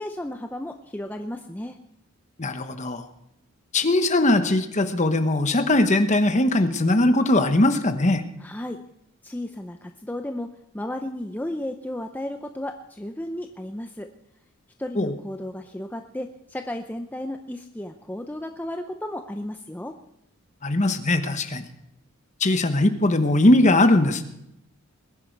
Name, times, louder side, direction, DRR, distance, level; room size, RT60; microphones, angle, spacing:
voice 1, 0.0-1.8 8.4-8.8 9.2-14.1 14.8-20.0, left 1 dB, 10° left, 5 dB, 0.5 m, -34 dB
voice 2, 2.4-3.1 3.7-8.2 15.0-15.1 20.6-21.6 22.4-24.2, left 1 dB, 35° left, 9 dB, 1.0 m, -20 dB
21.0 x 10.5 x 4.6 m, 0.80 s
head